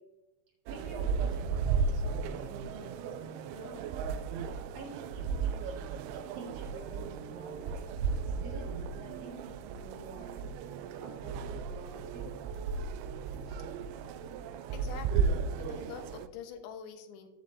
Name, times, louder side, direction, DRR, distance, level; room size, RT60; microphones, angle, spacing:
voice 1, 0.7-3.9 4.7-7.9 8.4-10.5 11.0-12.3, right 2 dB, 50° right, -1 dB, 2.5 m, -48 dB
sound 1, 0.7-16.3, right 5 dB, 90° right, 2.5 m, -35 dB
voice 2, 14.7-17.3, left 7 dB, 80° left, 6 dB, 2.7 m, -46 dB
13.5 x 7.7 x 2.7 m, 1.1 s
omnidirectional pair, 4.4 m